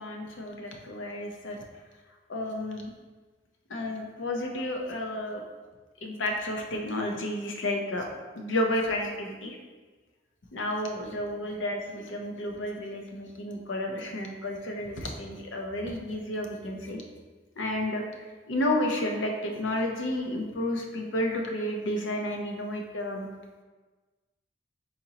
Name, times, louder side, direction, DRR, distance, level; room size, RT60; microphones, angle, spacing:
voice 1, 0.0-1.6 2.3-2.9 3.7-5.4 6.0-8.1 8.3-9.6 10.5-17.0 17.6-23.3, left 1 dB, 85° left, 1 dB, 0.7 m, -31 dB
4.2 x 3.9 x 2.8 m, 1.3 s
head